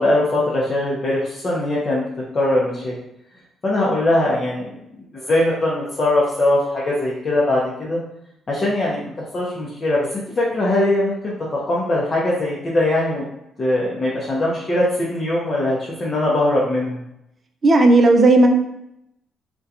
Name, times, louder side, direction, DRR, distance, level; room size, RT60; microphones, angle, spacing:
voice 1, 0.0-2.1 2.3-2.9 3.6-4.7 5.1-8.0 8.5-13.3 13.6-17.0, left 1 dB, 40° left, -6 dB, 0.5 m, -21 dB
voice 2, 17.6-18.5, right 2 dB, 40° right, 3 dB, 0.4 m, -12 dB
2.7 x 2.1 x 2.3 m, 0.81 s
cardioid pair, 90°, 0 cm